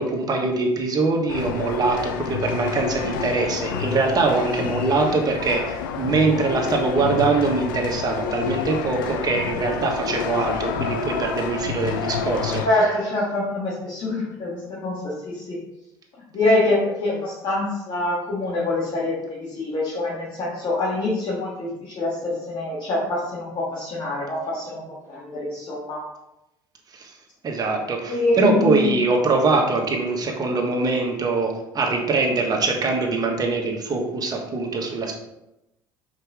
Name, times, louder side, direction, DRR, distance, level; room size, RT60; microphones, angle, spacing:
voice 1, 0.0-12.6 26.9-27.1 27.4-35.1, right 3 dB, 40° right, 1 dB, 1.5 m, -23 dB
sound 1, 1.3-12.7, left 7 dB, 90° left, 0.5 m, -29 dB
voice 2, 12.6-15.6 16.3-24.8 25.1-26.1 28.1-29.0, left 2 dB, 50° left, -7 dB, 1.8 m, -25 dB
5.6 x 4.7 x 3.6 m, 0.90 s
hypercardioid pair, 75°, 11 cm